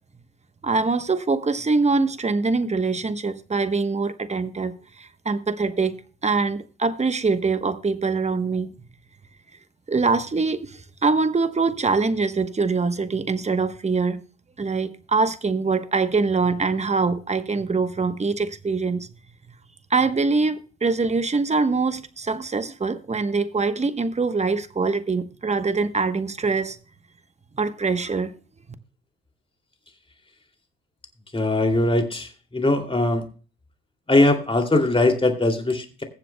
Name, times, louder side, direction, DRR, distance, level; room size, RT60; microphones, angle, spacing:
voice 1, 0.6-5.9 6.2-8.7 9.9-14.2 14.6-19.1 19.9-26.8 27.6-28.3, right 4 dB, 20° right, 1.1 m, -23 dB
voice 2, 31.3-33.2 34.1-36.0, left 2 dB, 20° left, 2.6 m, -21 dB
21.5 x 7.5 x 2.2 m
cardioid pair, 90°, 30 cm